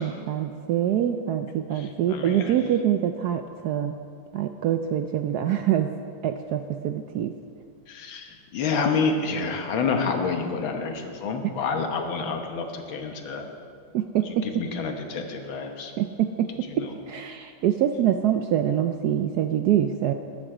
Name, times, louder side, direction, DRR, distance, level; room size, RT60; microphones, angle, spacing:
voice 1, 0.0-4.0 4.3-5.9 6.2-7.3 13.9-14.6 16.0-20.1, right 10 dB, 75° right, 7 dB, 0.9 m, -25 dB
voice 2, 1.8-2.5 7.9-13.4 14.5-15.9 16.7-16.9, left 4 dB, 85° left, 4 dB, 2.0 m, -28 dB
13.5 x 10.5 x 4.9 m, 2.2 s
omnidirectional pair, 2.1 m